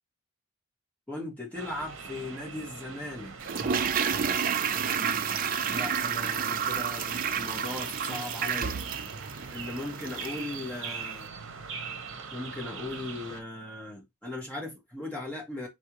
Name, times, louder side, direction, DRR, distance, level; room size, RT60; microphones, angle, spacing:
voice 1, 1.1-3.3 3.6-4.0 4.7-8.8 9.5-11.3 12.3-15.7, left 2 dB, 5° left, 1.8 m, -38 dB
sound 1, 1.5-13.4, right 5 dB, 60° right, 1.0 m, -42 dB
Toilet flush, 3.4-10.5 10.8-10.9, right 7 dB, 40° right, 0.4 m, -30 dB
4.4 x 3.4 x 3.1 m
head